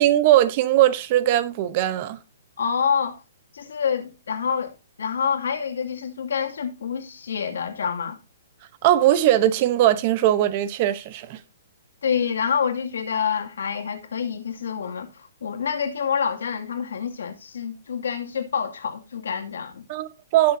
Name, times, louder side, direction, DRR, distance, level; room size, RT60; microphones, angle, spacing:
voice 1, 0.0-2.2 8.8-11.4 19.9-20.6, right 13 dB, 30° right, 0.8 m, -20 dB
voice 2, 2.6-3.2 3.5-8.2 12.0-19.9, left 7 dB, 85° left, 2.2 m, -27 dB
18.5 x 6.6 x 2.7 m
hypercardioid pair, 175°, 0 cm